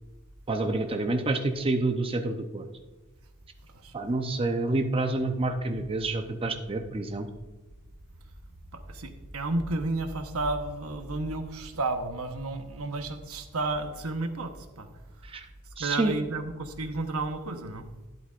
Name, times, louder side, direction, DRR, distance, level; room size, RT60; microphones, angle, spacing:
voice 1, 0.5-2.7 3.9-7.3 15.2-15.5 15.8-16.1, right 2 dB, 25° right, 5 dB, 0.6 m, -28 dB
voice 2, 8.7-14.9 15.8-17.9, right 2 dB, 85° right, 6 dB, 1.0 m, -32 dB
12.0 x 11.0 x 2.5 m, 1.2 s
head